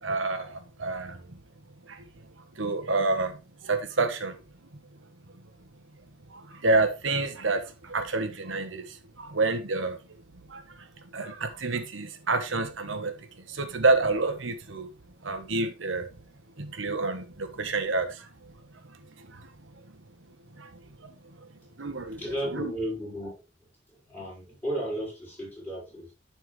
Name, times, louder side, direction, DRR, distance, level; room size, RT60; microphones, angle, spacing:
voice 1, 0.0-1.4 1.9-2.0 2.6-3.4 3.6-4.4 6.3-10.0 10.5-10.8 11.1-14.9 15.2-16.1 16.6-18.3 18.9-19.5 20.6-20.7 21.0-21.1 21.8-22.2 22.5-22.7, right 3 dB, 75° right, 1.2 m, -29 dB
voice 2, 22.2-26.1, equal, 10° left, 5.5 m, -35 dB
11.0 x 4.4 x 3.3 m
head